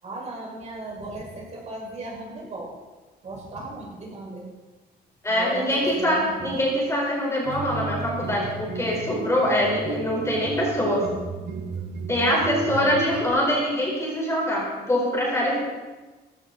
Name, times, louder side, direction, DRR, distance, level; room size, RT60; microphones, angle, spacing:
voice 1, 0.0-2.7 3.2-4.5 5.3-6.7 12.3-13.0, right 2 dB, 40° right, -3 dB, 6.2 m, -36 dB
voice 2, 5.2-11.0 12.1-15.6, equal, 15° left, -3 dB, 5.1 m, -24 dB
sound 1, 7.5-13.3, right 4 dB, 70° right, 1.7 m, -33 dB
19.0 x 16.0 x 4.4 m, 1.2 s
wide cardioid pair, 165°, 18 cm